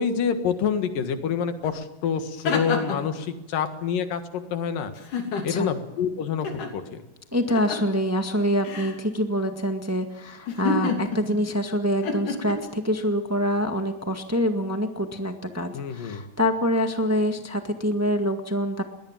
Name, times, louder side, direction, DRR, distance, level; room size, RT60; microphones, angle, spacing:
voice 1, 0.0-4.9 5.4-7.0 15.7-16.2, left 7 dB, 85° left, 8 dB, 3.4 m, -27 dB
sound 1, 1.6-1.7 2.1-3.1 5.0-5.8 6.4-6.7 7.5-7.9 8.6-9.0 10.5-11.4 12.0-12.5, left 4 dB, 70° left, 4.4 m, -29 dB
voice 2, 5.3-5.7 7.3-18.8, equal, 25° right, 5 dB, 0.3 m, -25 dB
22.0 x 19.0 x 7.4 m, 1.0 s
omnidirectional pair, 3.8 m